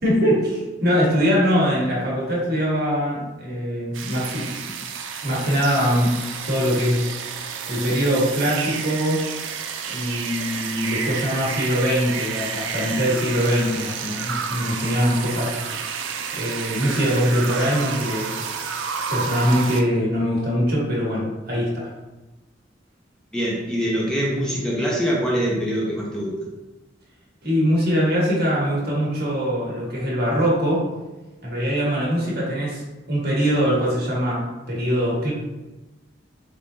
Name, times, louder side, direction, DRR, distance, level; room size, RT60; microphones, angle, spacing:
voice 1, 0.0-4.7 5.2-6.2 6.4-7.0 7.7-9.3 9.9-15.5 16.3-18.4 19.1-21.9 27.4-30.9 31.4-32.8 33.1-35.3, equal, 55° right, -5 dB, 1.4 m, -22 dB
sound 1, 3.9-19.8, right 6 dB, 90° right, 0.4 m, -30 dB
voice 2, 23.3-26.5, equal, 5° left, -4 dB, 0.5 m, -24 dB
3.8 x 3.6 x 2.7 m, 1.1 s
head